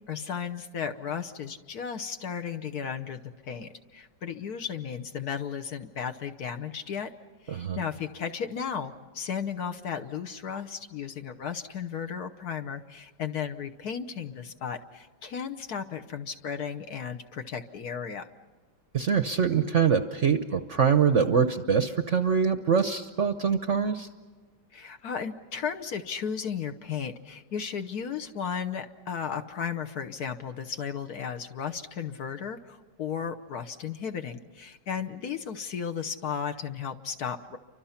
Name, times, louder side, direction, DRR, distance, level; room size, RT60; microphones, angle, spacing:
voice 1, 0.1-7.1 7.4-18.3 24.7-37.6, left 7 dB, 60° left, 7 dB, 1.3 m, -35 dB
voice 2, 7.5-7.8 18.9-24.1, right 6 dB, 55° right, 8 dB, 0.9 m, -24 dB
29.5 x 25.0 x 5.7 m, 1.4 s
omnidirectional pair, 2.1 m